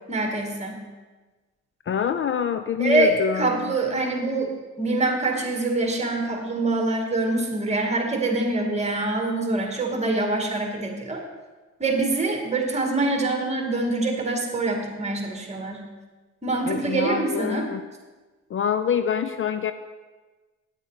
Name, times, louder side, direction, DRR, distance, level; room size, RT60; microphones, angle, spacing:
voice 1, 0.1-0.8 2.8-4.5 4.8-11.2 11.8-15.8 16.4-17.7, right 2 dB, 20° right, 2 dB, 2.2 m, -25 dB
voice 2, 1.9-3.6 16.7-17.8 18.5-19.7, left 8 dB, 45° left, 11 dB, 0.5 m, -25 dB
9.8 x 7.7 x 4.9 m, 1.3 s
cardioid pair, 90°, 30 cm